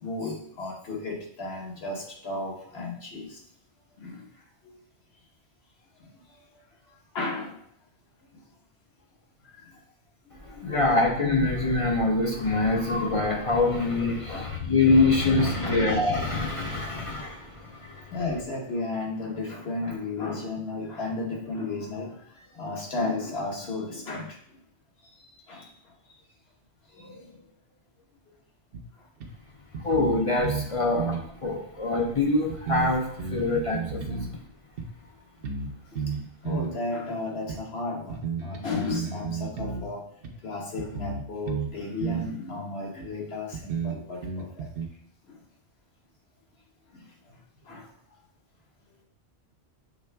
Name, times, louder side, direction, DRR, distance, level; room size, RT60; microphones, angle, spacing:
voice 1, 0.0-3.4 4.0-4.2 4.6-4.8 7.1-7.6 10.6-10.8 11.4-11.5 14.3-14.5 15.0-15.1 15.4-15.8 17.9-24.4 25.5-25.7 26.9-27.4 30.8-31.0 35.9-36.1 36.4-40.1 40.4-44.7 45.3-45.4 46.9-47.0 47.7-47.9, left 3 dB, 60° left, -1 dB, 1.3 m, -34 dB
voice 2, 10.4-18.1 29.8-34.3, left 2 dB, 40° left, 0 dB, 0.5 m, -25 dB
sound 1, 28.7-28.8 29.2-29.3 29.7-30.7 31.0-31.3 32.0-32.1 32.5-34.3 34.8-34.9 35.4-35.7 36.0-36.8 37.5-37.6 38.1-39.9 40.2-40.3 40.8-41.7 42.0-42.3 43.0-43.1 43.5-44.9, right 5 dB, 55° right, 0.8 m, -32 dB
6.7 x 3.6 x 2.2 m, 0.69 s
omnidirectional pair, 1.2 m